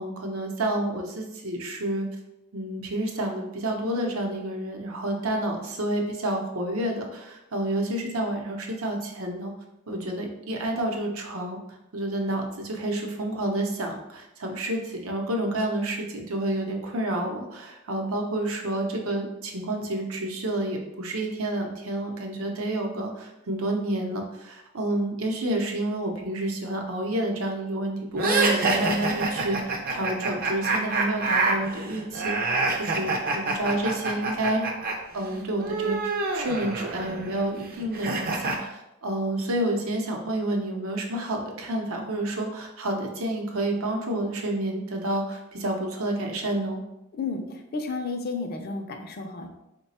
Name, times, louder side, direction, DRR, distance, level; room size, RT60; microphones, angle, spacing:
voice 1, 0.0-2.1 2.5-9.5 9.9-11.6 11.9-29.6 29.9-34.7 35.1-36.0 36.3-46.8, right 1 dB, 80° right, 2 dB, 0.7 m, -29 dB
sound 1, 28.2-34.9 35.2-38.6, right 3 dB, 45° right, 0.5 m, -27 dB
voice 2, 47.2-49.5, left 3 dB, 45° left, 5 dB, 0.4 m, -32 dB
3.9 x 2.2 x 4.1 m, 0.91 s
head